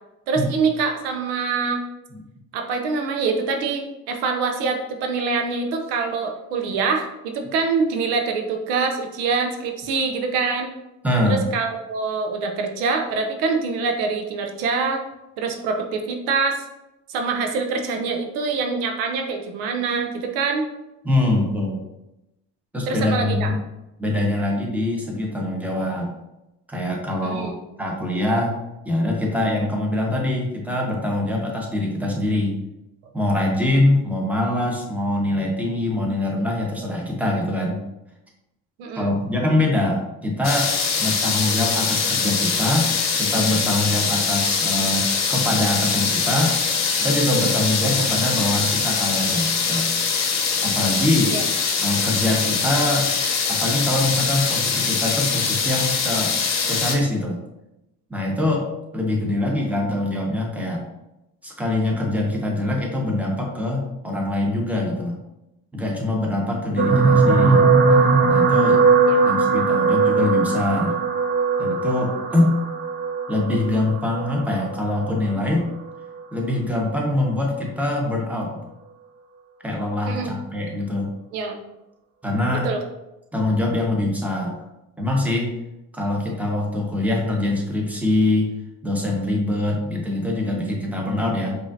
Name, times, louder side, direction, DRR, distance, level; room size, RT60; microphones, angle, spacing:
voice 1, 0.3-1.8 2.5-10.7 11.2-15.0 15.4-16.6 17.1-20.7 22.9-23.5 27.2-27.6 38.8-39.1 51.3-51.4 69.1-69.2 80.1-80.3 81.3-81.6 82.6-82.8, right 4 dB, 85° right, 4 dB, 0.6 m, -25 dB
voice 2, 11.0-11.4 21.0-21.8 22.7-23.6 24.0-26.1 26.7-27.5 27.8-28.5 28.8-32.5 33.1-37.8 38.9-40.7 41.0-42.9 43.1-46.6 47.0-49.9 50.6-51.3 51.8-53.1 53.5-56.4 56.7-57.4 58.1-58.7 58.9-60.8 61.4-65.2 65.7-67.6 68.2-68.8 69.2-70.9 71.6-72.5 73.3-75.7 76.3-78.6 79.6-81.1 82.2-82.7 83.3-84.6 85.0-85.5 85.9-88.5 88.8-91.6, left 1 dB, 5° right, -1 dB, 1.1 m, -23 dB
sound 1, 40.4-57.0, left 5 dB, 45° left, 0.9 m, -23 dB
sound 2, 66.8-75.2 76.0-76.2 76.5-76.6, right 4 dB, 30° right, 0.7 m, -19 dB
4.8 x 2.7 x 2.6 m, 0.93 s
supercardioid pair, 70°, 38 cm